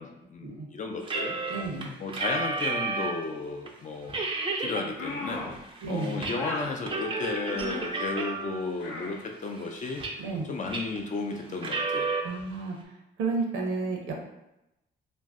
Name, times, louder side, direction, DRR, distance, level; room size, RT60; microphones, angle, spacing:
voice 1, 0.0-1.3 2.0-4.2 4.6-10.0 10.5-12.1, left 3 dB, 40° left, 2 dB, 0.5 m, -34 dB
sound 1, 1.0-3.3 3.7-3.8 4.1-4.9 5.2-6.4 6.6-8.7 9.2-10.4 10.7-11.0 11.5-12.2, right 3 dB, 25° right, 0.4 m, -32 dB
voice 2, 1.5-1.9 5.8-6.2 10.2-10.4 12.2-12.8 13.2-14.1, right 3 dB, 80° right, 0 dB, 0.7 m, -31 dB
sound 2, 5.0-5.6 6.4-6.7 7.5-7.9 8.8-9.2, left 2 dB, 85° left, 0.7 m, -35 dB
2.5 x 2.1 x 3.4 m, 0.90 s
cardioid pair, 90°, 20 cm